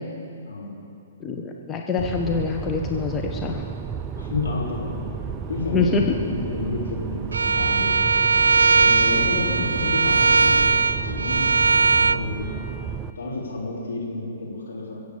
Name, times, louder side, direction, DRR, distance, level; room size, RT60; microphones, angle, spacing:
voice 1, 1.2-3.6 5.7-6.0, left 4 dB, 20° left, 1 dB, 1.0 m, -25 dB
sound 1, 2.0-13.1, right 6 dB, 25° right, 0.5 m, -32 dB
voice 2, 4.2-5.0 5.5-8.0 8.7-12.5 13.2-15.0, left 3 dB, 75° left, -4 dB, 4.0 m, -30 dB
Bowed string instrument, 7.3-12.2, right 4 dB, 80° right, 0.3 m, -19 dB
21.5 x 8.1 x 7.1 m, 2.6 s
figure-of-eight pair, 120°, 0 cm